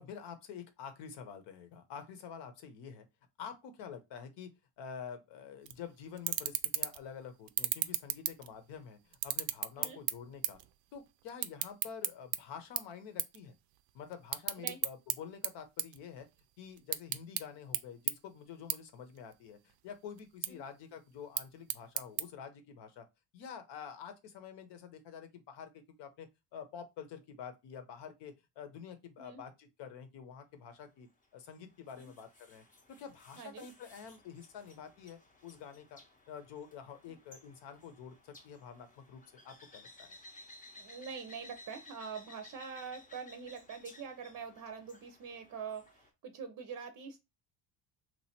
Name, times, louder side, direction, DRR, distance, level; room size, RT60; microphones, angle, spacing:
voice 1, 0.0-3.1 3.4-10.6 10.9-13.6 13.9-16.3 16.6-23.1 23.3-31.1 31.3-36.0 36.3-40.2, left 7 dB, 65° left, 1.0 m, -48 dB
sound 1, 5.6-5.8 6.2-7.1 7.5-8.7 9.1-10.7 10.9-12.4 12.8-12.9 13.2-13.4 13.7-15.1 15.4-16.4 16.8-17.4 17.7-17.8 18.1-18.2 18.7-18.8 19.2-19.7 20.2-20.5 21.1-22.2, right 14 dB, 90° right, 0.5 m, -33 dB
sound 2, 31.2-46.1, left 2 dB, 20° left, 0.7 m, -58 dB
voice 2, 40.8-47.2, right 6 dB, 40° right, 0.6 m, -44 dB
3.0 x 2.5 x 4.3 m
cardioid pair, 130°, 44 cm